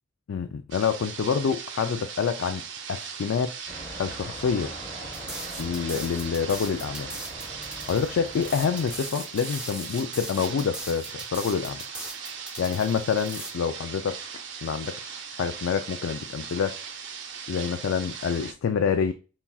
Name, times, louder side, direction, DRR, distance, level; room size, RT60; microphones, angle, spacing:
voice 1, 0.3-2.6 2.9-3.5 4.0-4.7 5.6-7.1 7.9-11.8 12.6-14.2 14.6-16.8 17.5-19.1, left 6 dB, 75° left, 0.3 m, -27 dB
sound 1, 0.7-18.5, right 6 dB, 65° right, 0.6 m, -39 dB
sound 2, 3.7-9.3, equal, 15° left, 1.2 m, -42 dB
sound 3, 5.1-13.5, right 1 dB, 5° right, 0.6 m, -39 dB
5.5 x 2.3 x 2.3 m
head